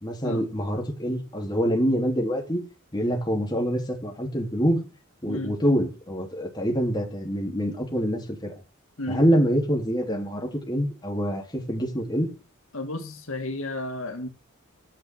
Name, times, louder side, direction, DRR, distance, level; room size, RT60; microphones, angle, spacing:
voice 1, 0.0-2.6 2.9-4.8 5.2-8.5 9.1-12.3, equal, 20° left, 3.4 m, -25 dB
voice 2, 5.3-5.6 9.0-9.2 12.7-14.3, left 2 dB, 80° left, 2.0 m, -32 dB
10.0 x 6.3 x 8.1 m
head